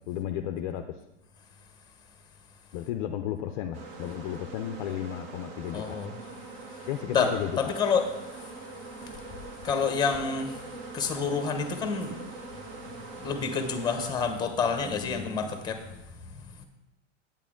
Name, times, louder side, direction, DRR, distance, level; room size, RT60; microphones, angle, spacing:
voice 1, 0.1-0.8 2.7-6.0 6.9-7.7, left 11 dB, 40° left, 7 dB, 0.5 m, -33 dB
sound 1, 3.7-14.1, right 3 dB, 40° right, 1.3 m, -43 dB
voice 2, 5.7-6.3 6.7-12.3 12.8-16.6, left 5 dB, 10° left, 7 dB, 0.9 m, -30 dB
8.8 x 8.3 x 3.7 m, 0.95 s
hypercardioid pair, 135°, 37 cm